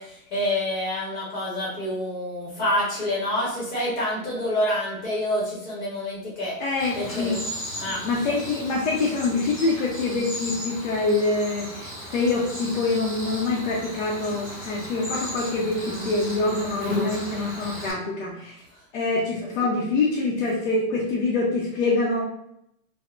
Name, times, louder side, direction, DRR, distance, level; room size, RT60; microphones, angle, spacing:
voice 1, 0.0-6.5 6.9-7.4 7.8-8.0 19.6-19.7, left 1 dB, 35° left, -5 dB, 0.9 m, -27 dB
voice 2, 6.6-7.4 7.9-18.6 18.9-22.2, left 3 dB, 55° left, -3 dB, 0.6 m, -25 dB
Cricket, 6.8-17.9, left 1 dB, 5° right, 0.4 m, -35 dB
3.6 x 2.1 x 2.3 m, 0.78 s
hypercardioid pair, 165°, 44 cm